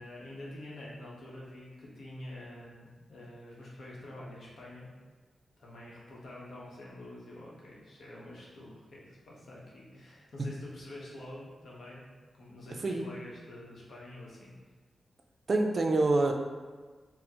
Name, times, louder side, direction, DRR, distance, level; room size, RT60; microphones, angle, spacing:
voice 1, 0.0-4.9 5.6-12.0 12.4-14.5, left 1 dB, 65° left, -5 dB, 0.9 m, -47 dB
voice 2, 15.5-16.3, right 2 dB, 50° right, 2 dB, 0.3 m, -26 dB
4.2 x 2.0 x 2.8 m, 1.4 s
wide cardioid pair, 100°, 0 cm